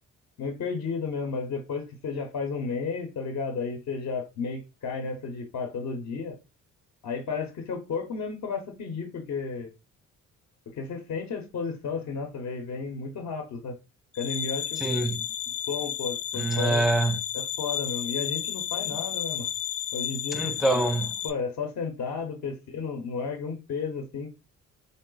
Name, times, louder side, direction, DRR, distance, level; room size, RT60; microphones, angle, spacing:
voice 1, 0.4-6.4 7.0-9.7 10.7-13.7 14.1-14.8 15.7-16.9 17.6-19.5 19.9-20.8 21.2-24.3, left 5 dB, 65° left, 0.9 m, -33 dB
sound 1, 14.1-21.3, left 10 dB, 85° left, 0.5 m, -32 dB
voice 2, 14.8-15.3 16.4-17.2 20.3-21.1, right 2 dB, ahead, 0.4 m, -25 dB
3.9 x 2.0 x 3.8 m
cardioid pair, 90°, 30 cm